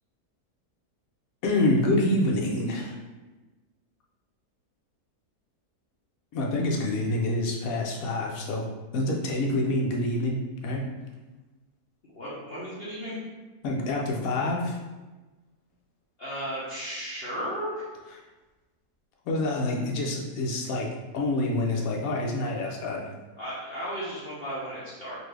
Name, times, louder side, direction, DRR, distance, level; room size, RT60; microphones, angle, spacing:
voice 1, 1.4-3.0 6.3-8.6 8.9-10.9 13.6-14.8 19.3-20.9 21.1-23.0, left 1 dB, 70° left, -2 dB, 1.1 m, -27 dB
voice 2, 12.2-13.3 16.2-17.8 23.4-25.2, equal, 45° left, -9 dB, 0.9 m, -34 dB
3.9 x 2.6 x 3.2 m, 1.2 s
omnidirectional pair, 1.6 m